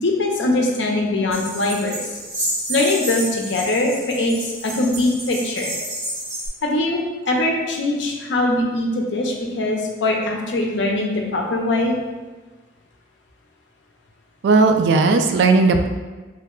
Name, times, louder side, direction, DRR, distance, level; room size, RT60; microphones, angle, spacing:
voice 1, 0.0-2.1 2.7-4.3 4.6-5.8 6.6-12.0, left 2 dB, 75° left, 0 dB, 0.5 m, -22 dB
sound 1, 1.3-6.5, right 1 dB, 35° right, 1.1 m, -30 dB
voice 2, 14.4-15.9, right 3 dB, 70° right, 6 dB, 0.3 m, -16 dB
3.3 x 2.1 x 3.6 m, 1.3 s
head